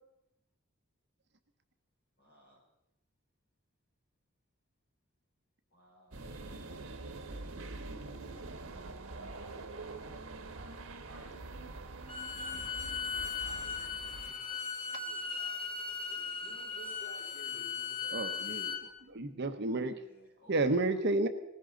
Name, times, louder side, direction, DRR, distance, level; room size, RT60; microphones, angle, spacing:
voice 1, 2.2-2.6 5.7-6.2 19.7-21.0, equal, 55° left, -3 dB, 6.5 m, -60 dB
sound 1, 6.1-14.3, right 2 dB, 90° right, 1.1 m, -45 dB
voice 2, 9.1-10.1 10.5-11.3 12.6-18.2, right 2 dB, 30° right, -10 dB, 7.0 m, -55 dB
Bowed string instrument, 12.1-18.8, left 5 dB, 25° left, 1.5 m, -38 dB
voice 3, 18.1-19.9 20.5-21.3, right 2 dB, 55° right, 8 dB, 0.9 m, -31 dB
19.5 x 15.5 x 3.9 m, 0.86 s
head